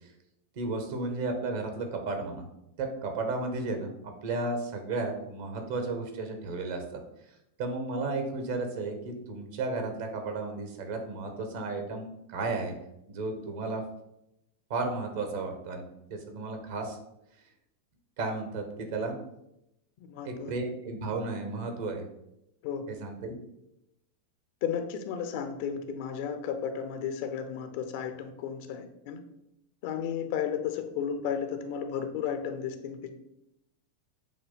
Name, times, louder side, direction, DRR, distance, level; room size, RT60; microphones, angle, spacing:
voice 1, 0.5-2.4 2.8-7.0 7.6-12.7 13.1-13.8 14.7-17.0 18.2-19.2 20.2-22.1 22.9-23.3, right 3 dB, 50° right, 4 dB, 1.5 m, -33 dB
voice 2, 20.1-20.5 22.6-22.9 24.6-29.2 29.8-33.1, left 8 dB, 50° left, 8 dB, 0.8 m, -33 dB
7.5 x 3.1 x 5.7 m, 0.83 s
figure-of-eight pair, 90°, 0 cm